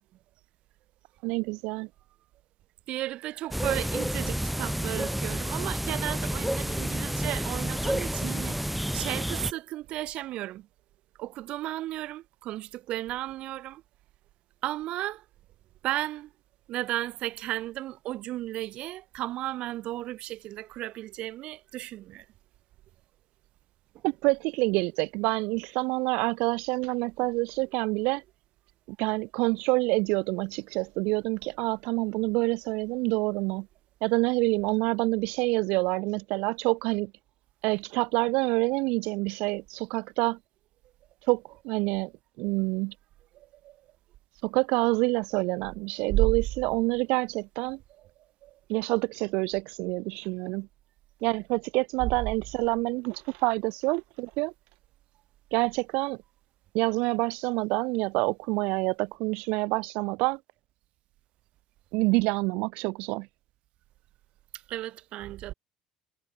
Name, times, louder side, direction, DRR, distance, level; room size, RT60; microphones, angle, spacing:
voice 1, 1.2-1.9 24.0-28.2 29.0-33.7 34.0-37.1 37.6-40.4 41.2-42.1 42.4-42.9 44.4-47.8 48.7-50.7 51.2-54.5 55.5-56.2 56.7-60.4 61.9-63.3, right 27 dB, 85° right, 0.4 m, -27 dB
voice 2, 2.9-10.7 11.2-13.8 14.6-15.2 15.8-16.3 16.7-22.2 43.3-43.8 46.1-46.2 48.4-48.5 64.5-65.5, right 15 dB, 60° right, 2.5 m, -34 dB
sound 1, 3.5-9.5, right 1 dB, ahead, 1.4 m, -30 dB
cardioid pair, 140°, 2 cm